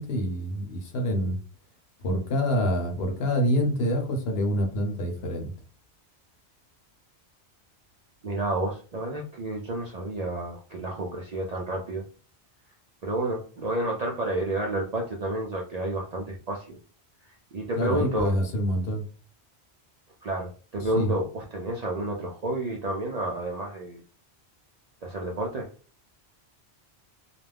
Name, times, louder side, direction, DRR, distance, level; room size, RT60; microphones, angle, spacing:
voice 1, 0.0-1.4 2.0-5.5 17.7-19.0 20.8-21.1, equal, 65° left, 4 dB, 0.8 m, -26 dB
voice 2, 8.2-12.0 13.0-16.8 17.5-18.3 20.2-24.0 25.0-25.7, right 1 dB, 60° right, -1 dB, 0.4 m, -30 dB
2.4 x 2.1 x 3.3 m, 0.39 s
omnidirectional pair, 1.1 m